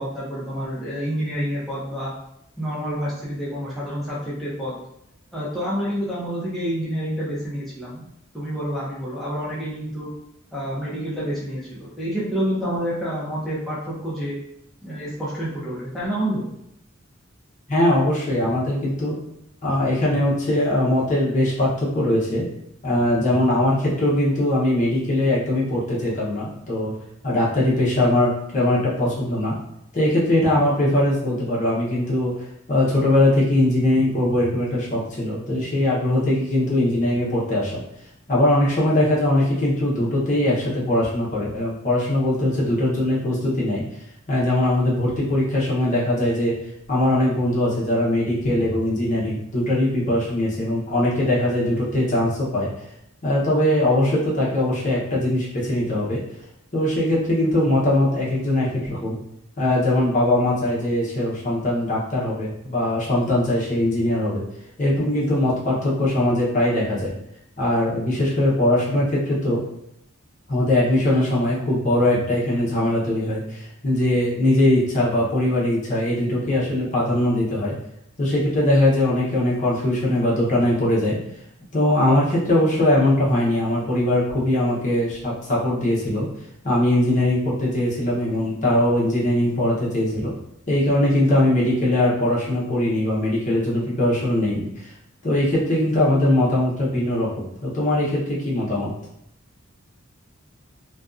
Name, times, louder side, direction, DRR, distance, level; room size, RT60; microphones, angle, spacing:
voice 1, 0.0-2.1 2.6-4.7 5.3-8.0 8.3-10.1 10.5-14.4 14.8-16.5, equal, ahead, -9 dB, 0.5 m, -28 dB
voice 2, 17.7-19.2 19.6-22.5 22.8-26.9 27.2-29.6 29.9-37.8 38.3-43.8 44.3-46.5 46.9-52.7 53.2-56.2 56.7-59.2 59.6-64.4 64.8-67.1 67.6-69.6 70.5-77.8 78.2-81.2 81.7-86.3 86.6-90.3 90.7-94.9 95.2-98.9, left 1 dB, 35° left, -5 dB, 0.7 m, -21 dB
2.5 x 2.2 x 2.4 m, 0.77 s
head